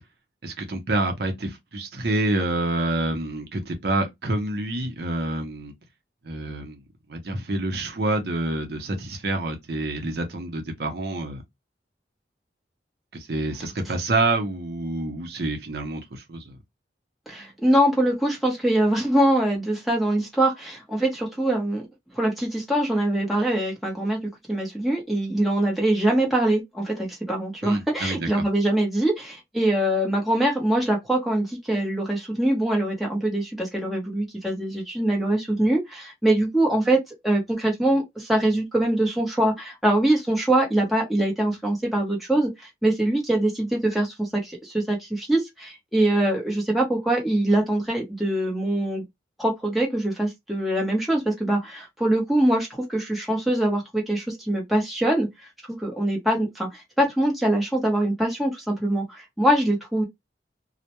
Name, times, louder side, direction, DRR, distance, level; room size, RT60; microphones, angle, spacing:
voice 1, 0.4-5.7 6.2-6.8 7.1-11.4 13.1-16.6 27.6-28.4, right 2 dB, 60° right, 0.6 m, -27 dB
voice 2, 17.3-21.8 22.1-24.2 24.5-42.5 42.8-49.0 49.4-55.3 55.7-60.0, right 1 dB, ahead, 0.8 m, -23 dB
2.2 x 2.0 x 2.8 m
head